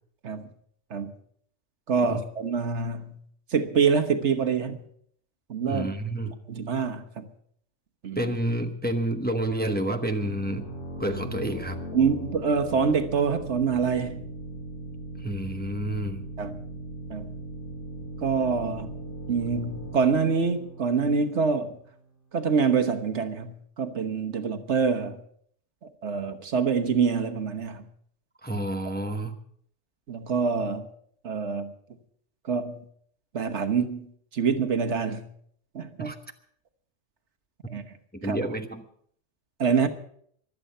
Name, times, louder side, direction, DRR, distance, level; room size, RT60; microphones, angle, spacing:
voice 1, 1.9-3.2 3.5-4.8 5.5-5.9 6.3-7.3 8.0-8.3 11.9-14.2 16.4-16.6 17.1-17.3 18.2-18.9 19.3-21.8 22.3-25.2 25.8-27.8 30.1-30.9 31.2-31.7 32.4-32.8 33.3-34.1 34.3-35.3 35.7-36.1 37.7-37.8 38.2-38.4 39.6-39.9, right 5 dB, 70° right, 1.5 m, -26 dB
voice 2, 5.7-6.3 8.1-10.7 11.0-11.8 15.2-16.3 28.4-29.4 36.0-36.2 38.2-38.8, right 1 dB, 10° left, 0.9 m, -29 dB
sound 1, 10.2-21.7, right 1 dB, 70° left, 4.6 m, -39 dB
24.0 x 8.5 x 5.5 m
omnidirectional pair, 1.2 m